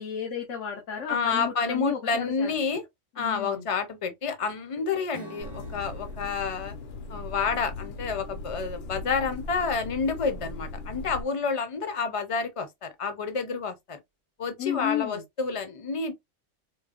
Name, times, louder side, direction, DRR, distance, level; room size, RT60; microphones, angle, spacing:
voice 1, 0.0-2.5 3.2-3.6 14.6-15.2, left 8 dB, 85° left, 1.2 m, -33 dB
voice 2, 1.1-2.8 3.2-6.8 7.1-14.0 14.4-16.1, left 5 dB, 35° left, 0.6 m, -29 dB
Strum, 5.1-9.3, right 4 dB, 30° right, 0.5 m, -50 dB
sound 1, 5.4-11.2, left 2 dB, 60° left, 0.9 m, -39 dB
4.6 x 2.2 x 2.4 m
omnidirectional pair, 1.2 m